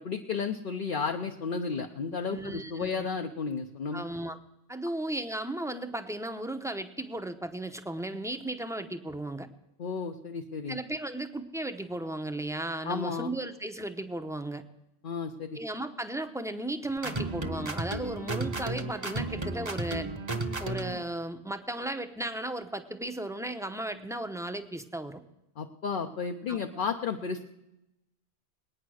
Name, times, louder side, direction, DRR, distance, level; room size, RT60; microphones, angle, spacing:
voice 1, 0.0-4.1 9.8-10.8 12.8-13.3 15.0-15.6 25.6-27.4, left 5 dB, 55° left, 4 dB, 0.9 m, -33 dB
voice 2, 2.3-3.1 3.9-4.4 4.7-9.5 10.7-14.6 15.5-20.1 20.6-25.2 26.5-26.9, right 1 dB, 5° right, 7 dB, 0.7 m, -35 dB
sound 1, 17.0-21.0, right 2 dB, 25° right, 1.0 m, -33 dB
19.5 x 9.4 x 6.3 m, 0.93 s
omnidirectional pair, 1.1 m